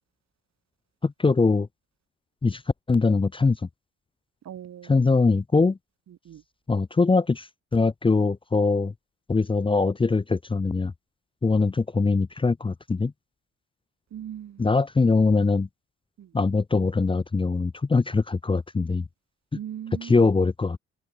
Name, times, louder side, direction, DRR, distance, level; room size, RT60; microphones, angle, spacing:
voice 1, 1.0-1.7 2.4-2.6 2.9-3.6 4.8-5.8 6.7-8.9 9.3-10.9 11.4-13.1 14.6-15.7 16.3-19.1 20.0-20.8, left 4 dB, 15° left, 0.6 m, -22 dB
voice 2, 4.4-5.0 6.2-6.4 14.1-14.7 16.2-16.3 19.5-20.3, right 10 dB, 60° right, 2.5 m, -39 dB
cardioid pair, 90°, 30 cm